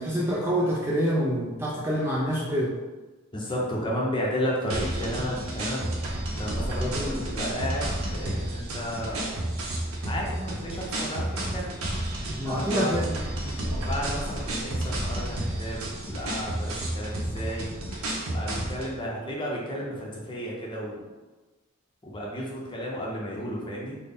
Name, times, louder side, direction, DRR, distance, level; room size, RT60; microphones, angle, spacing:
voice 1, 0.0-2.8 6.8-7.3 12.4-13.5, equal, 10° right, -5 dB, 0.3 m, -27 dB
voice 2, 3.3-9.5 10.0-11.7 12.4-12.9 13.8-17.7 18.3-21.0 22.0-24.0, equal, 20° left, -3 dB, 0.7 m, -33 dB
sound 1, 4.7-18.9, right 1 dB, 80° right, 0.8 m, -31 dB
3.9 x 2.1 x 3.6 m, 1.2 s
head